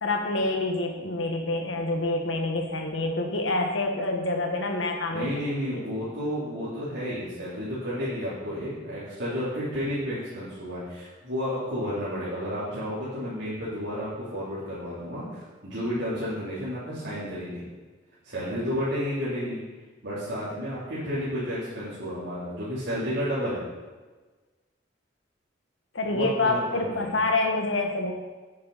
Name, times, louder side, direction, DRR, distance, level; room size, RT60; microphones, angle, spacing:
voice 1, 0.0-5.3 5.7-5.8 25.9-28.1, left 2 dB, 85° left, 3 dB, 1.6 m, -27 dB
voice 2, 5.1-17.6 18.2-19.6 20.0-23.6 26.0-27.2, equal, 75° right, -12 dB, 3.7 m, -31 dB
9.6 x 9.5 x 4.3 m, 1.3 s
head